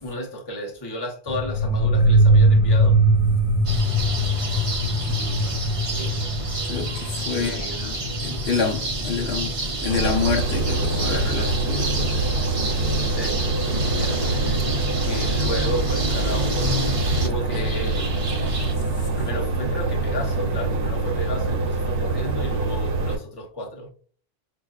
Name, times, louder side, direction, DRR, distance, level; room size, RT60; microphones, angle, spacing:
voice 1, 0.0-3.0 6.0-6.3 7.3-8.1 13.0-13.5 13.9-14.8 15.1-18.1 18.5-18.7 19.2-23.9, equal, 25° left, 0.9 m, -33 dB
sound 1, 1.3-9.7, right 1 dB, 50° left, 0.4 m, -21 dB
sound 2, 3.7-18.7, right 1 dB, 40° right, 0.6 m, -28 dB
voice 2, 5.0-5.5 6.6-7.7 8.2-12.2 19.0-19.1, left 5 dB, 75° left, 1.1 m, -28 dB
sound 3, 9.9-23.2, right 3 dB, 60° right, 0.9 m, -25 dB
5.3 x 2.6 x 2.4 m
omnidirectional pair, 1.1 m